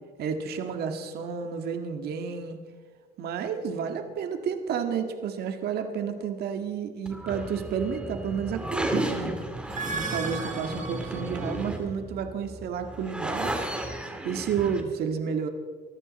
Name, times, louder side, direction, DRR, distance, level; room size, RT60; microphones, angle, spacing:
voice 1, 0.2-2.6 3.2-9.3 9.8-13.6 14.2-15.5, right 7 dB, 70° right, 6 dB, 1.8 m, -31 dB
sound 1, 7.1-14.8, right 1 dB, 5° right, 2.6 m, -34 dB
sound 2, 9.6-11.8, right 4 dB, 50° right, 2.4 m, -36 dB
24.0 x 14.0 x 4.2 m, 1.5 s
cardioid pair, 110°, 17 cm